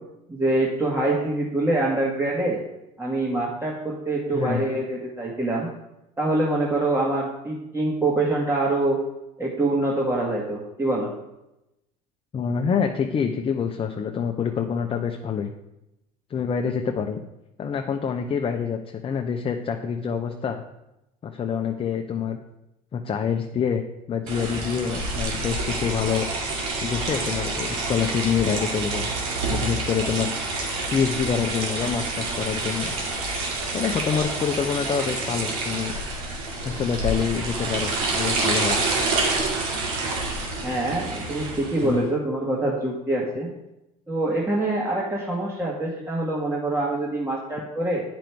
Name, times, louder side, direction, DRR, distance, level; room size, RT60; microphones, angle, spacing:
voice 1, 0.3-2.6 3.0-5.7 6.2-9.0 9.4-11.1 40.6-43.5 44.1-48.0, right 2 dB, 15° right, -3 dB, 1.5 m, -25 dB
voice 2, 4.3-4.6 12.3-15.5 16.3-17.2 17.6-20.6 21.2-22.4 22.9-23.8 24.1-26.3 26.8-29.1 29.5-30.3 30.9-32.9 33.7-35.9 36.6-38.8 41.8-42.0, left 7 dB, 30° left, 4 dB, 0.7 m, -26 dB
sound 1, 24.3-41.9, right 3 dB, 85° right, 2.2 m, -28 dB
9.1 x 5.2 x 4.6 m, 0.92 s
supercardioid pair, 95°, 19 cm